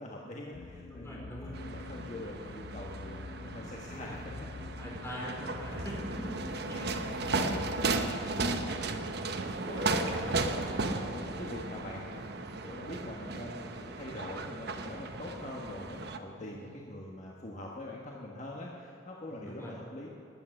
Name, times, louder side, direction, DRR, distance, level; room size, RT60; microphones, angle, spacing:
voice 1, 0.0-1.3 1.6-4.5 6.8-8.0 8.3-20.1, left 1 dB, 40° left, -2 dB, 1.4 m, -44 dB
sound 1, 0.5-8.7, left 3 dB, 85° left, 0.7 m, -46 dB
voice 2, 0.9-1.5 3.9-4.2 4.8-6.3 6.7-6.9 16.3-16.7 19.3-19.7, equal, 15° left, -4 dB, 4.4 m, -43 dB
sound 2, 1.5-16.2, right 3 dB, 60° right, 0.9 m, -35 dB
20.0 x 8.9 x 6.5 m, 2.6 s
head